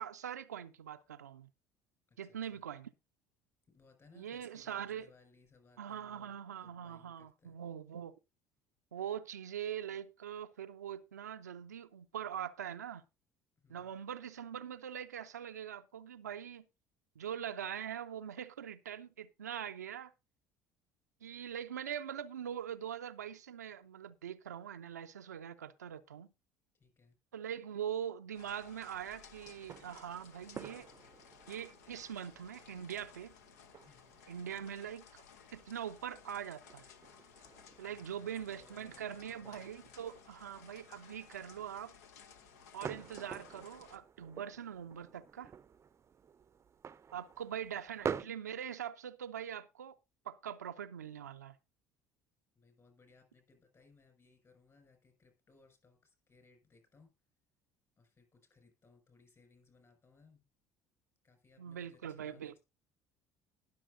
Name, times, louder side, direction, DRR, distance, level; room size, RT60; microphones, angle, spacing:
voice 1, 0.0-1.5 2.2-2.9 4.2-5.1 5.8-8.2 8.9-13.0 13.7-16.7 17.2-20.1 21.2-26.3 27.3-30.9 31.5-33.3 34.3-35.2 35.5-36.9 37.8-41.9 42.7-45.5 47.1-50.0 50.2-51.6 61.6-62.6, right 9 dB, 80° right, 0.5 m, -43 dB
voice 2, 2.1-2.6 3.7-7.6 13.6-14.0 26.7-27.2 33.8-34.2 37.8-40.0 52.5-57.1 58.0-60.5 61.2-62.6, left 4 dB, 35° left, 5.8 m, -65 dB
sound 1, 28.3-44.0, left 7 dB, 70° left, 0.8 m, -58 dB
sound 2, 28.9-48.2, right 7 dB, 30° right, 0.6 m, -49 dB
20.0 x 6.7 x 2.6 m
figure-of-eight pair, 60°, 9 cm